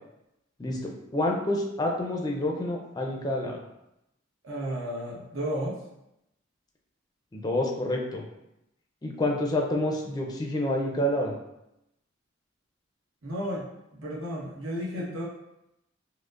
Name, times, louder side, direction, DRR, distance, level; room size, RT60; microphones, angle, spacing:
voice 1, 0.6-3.6 7.3-8.2 9.0-11.3, left 1 dB, 20° left, 0 dB, 0.4 m, -28 dB
voice 2, 4.4-5.8 13.2-13.6 13.9-15.2, equal, 75° right, -4 dB, 1.0 m, -33 dB
4.9 x 2.0 x 2.4 m, 0.85 s
head